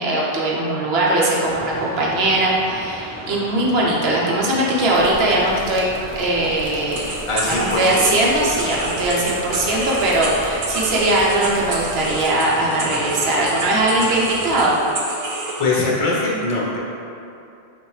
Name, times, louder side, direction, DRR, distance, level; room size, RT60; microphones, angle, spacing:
voice 1, 0.0-5.8 6.1-7.2 7.4-14.8, right 1 dB, 80° right, -4 dB, 1.0 m, -20 dB
sound 1, 1.5-14.6, equal, 20° right, 0.4 m, -37 dB
sound 2, 4.9-12.3, left 2 dB, 75° left, 0.8 m, -38 dB
sound 3, 6.9-15.7, right 2 dB, 60° right, 0.8 m, -29 dB
voice 2, 7.3-8.0 15.6-16.8, left 2 dB, 35° left, -5 dB, 0.8 m, -21 dB
6.2 x 2.6 x 3.1 m, 2.6 s
omnidirectional pair, 1.0 m